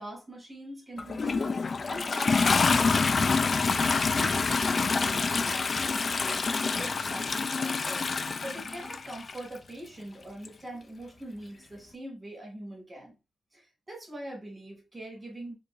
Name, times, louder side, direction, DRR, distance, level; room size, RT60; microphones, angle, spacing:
voice 1, 0.0-3.6 4.1-8.1 8.4-13.1 13.5-15.5, right 1 dB, 20° right, 2.3 m, -42 dB
Toilet flush, 1.0-9.4 10.4-10.5, left 4 dB, 45° left, 0.3 m, -27 dB
4.7 x 2.6 x 2.5 m
wide cardioid pair, 110°, 0 cm